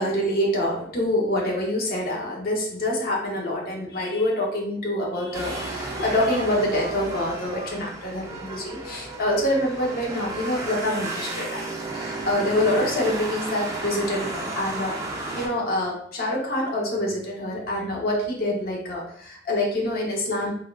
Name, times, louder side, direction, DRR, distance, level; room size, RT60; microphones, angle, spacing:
voice 1, 0.0-15.0 15.3-20.5, left 1 dB, 50° left, -2 dB, 0.7 m, -26 dB
sound 1, 5.3-15.5, right 2 dB, 15° right, 0.4 m, -33 dB
3.4 x 2.2 x 2.3 m, 0.65 s
head